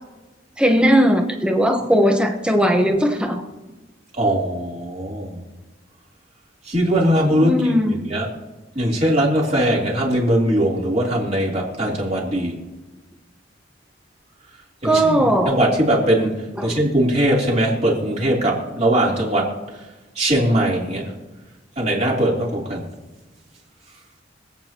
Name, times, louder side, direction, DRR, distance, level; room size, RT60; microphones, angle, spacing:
voice 1, 0.6-3.4 7.4-8.0 14.8-15.6 16.6-16.8, equal, 5° right, 3 dB, 1.1 m, -18 dB
voice 2, 4.1-5.4 6.6-8.3 8.8-12.5 14.8-19.8 20.2-21.1 21.8-22.9, right 1 dB, 35° right, -3 dB, 3.4 m, -20 dB
26.0 x 8.7 x 3.0 m, 1.2 s
head